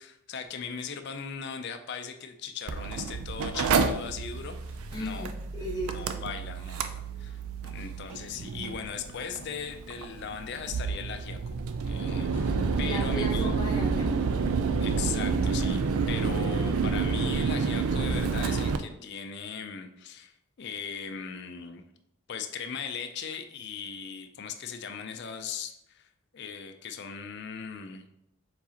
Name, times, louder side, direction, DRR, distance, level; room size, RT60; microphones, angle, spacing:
voice 1, 0.0-5.3 5.8-6.8 7.2-11.6 11.8-13.5 14.8-21.8 22.3-26.1 26.3-28.0, left 6 dB, 50° left, 7 dB, 0.4 m, -38 dB
Mechanical fan, 2.7-18.8, right 5 dB, 90° right, 0.4 m, -29 dB
voice 2, 4.9-6.2 12.8-14.1, equal, 20° left, -3 dB, 1.0 m, -36 dB
4.7 x 3.9 x 2.8 m, 0.80 s
head